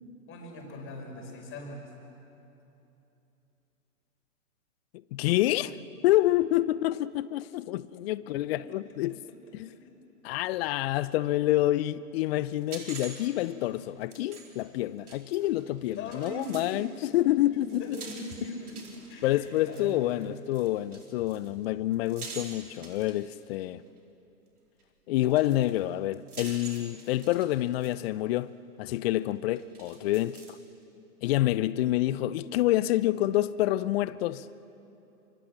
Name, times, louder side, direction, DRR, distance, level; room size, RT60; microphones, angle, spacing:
voice 1, 0.3-1.9 8.3-8.4 8.7-8.8 9.7-9.8 16.0-17.2 17.5-20.4, left 1 dB, 30° left, 5.8 m, -41 dB
voice 2, 5.1-5.7 6.0-9.2 9.5-9.7 10.2-18.0 19.2-23.8 25.1-28.5 28.8-30.6 31.2-34.5, left 15 dB, 45° left, 0.6 m, -27 dB
sound 1, 12.5-16.7 17.1-23.6 24.8-24.9 25.3-28.1 28.4-28.5 29.3-30.6, right 4 dB, 80° right, 4.4 m, -47 dB
25.5 x 25.0 x 7.5 m
hypercardioid pair, 120°, 44 cm